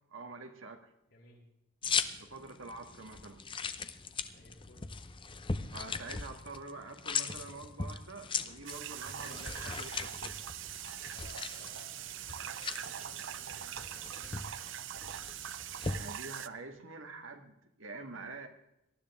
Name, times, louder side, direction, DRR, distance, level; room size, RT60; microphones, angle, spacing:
voice 1, 0.1-0.8 2.2-3.4 5.7-10.3 15.9-18.5, right 3 dB, 90° right, 5 dB, 1.8 m, -46 dB
voice 2, 1.1-1.4 4.2-4.8 11.1-14.8, left 1 dB, 75° left, -8 dB, 5.9 m, -58 dB
sound 1, 1.8-16.0, left 5 dB, 25° left, 0.7 m, -39 dB
sound 2, 8.7-16.5, right 11 dB, 70° right, 0.6 m, -42 dB
19.0 x 12.0 x 3.6 m, 0.84 s
head